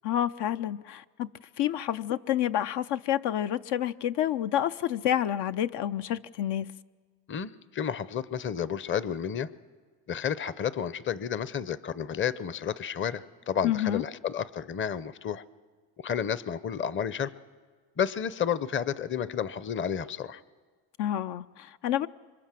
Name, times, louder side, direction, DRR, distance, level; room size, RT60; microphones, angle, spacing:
voice 1, 0.0-1.3 1.6-6.7 13.6-14.0 21.0-22.1, left 11 dB, 65° left, 0.7 m, -29 dB
voice 2, 7.3-9.5 10.1-15.4 16.0-17.3 18.0-20.4, left 8 dB, 25° left, 0.7 m, -31 dB
27.0 x 24.0 x 7.6 m
cardioid pair, 105°, 44 cm